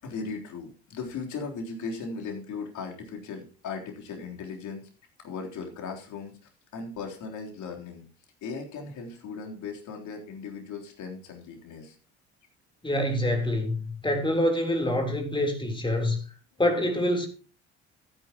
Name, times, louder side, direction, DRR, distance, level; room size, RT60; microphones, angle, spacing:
voice 1, 0.0-4.8 5.2-6.4 6.7-8.0 8.4-12.0, left 4 dB, 60° left, 3.7 m, -37 dB
voice 2, 12.8-16.2 16.6-17.3, left 1 dB, 15° left, 3.7 m, -26 dB
15.0 x 9.6 x 3.0 m
hypercardioid pair, 60°, 33 cm